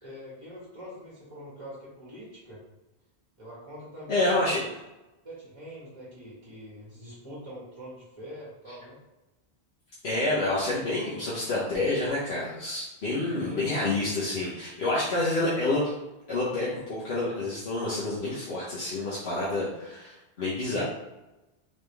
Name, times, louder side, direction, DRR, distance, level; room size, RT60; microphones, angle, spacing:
voice 1, 0.0-2.6 3.4-4.7 5.2-9.0 13.3-13.8 20.7-20.8, equal, 30° right, -8 dB, 1.6 m, -43 dB
voice 2, 4.1-4.7 10.0-15.9 16.3-20.8, left 2 dB, 85° left, -8 dB, 1.3 m, -28 dB
3.9 x 3.6 x 3.4 m, 1.0 s
omnidirectional pair, 1.0 m